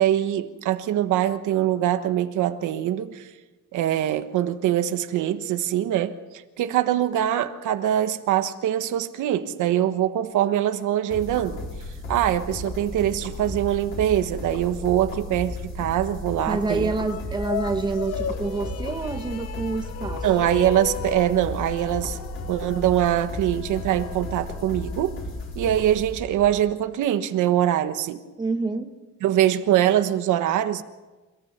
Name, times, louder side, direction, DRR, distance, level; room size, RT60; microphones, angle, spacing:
voice 1, 0.0-3.3 3.7-6.2 6.6-11.6 12.1-16.9 20.2-22.2 22.5-25.2 25.5-28.2 29.2-30.8, right 12 dB, 80° right, 1.3 m, -23 dB
sound 1, 11.1-26.6, left 2 dB, 40° left, 4.3 m, -34 dB
voice 2, 16.5-20.3 28.4-28.9, right 3 dB, 15° right, 1.2 m, -27 dB
sound 2, 17.0-25.5, left 12 dB, 55° left, 0.9 m, -37 dB
28.0 x 15.0 x 7.3 m
cardioid pair, 175°, 30 cm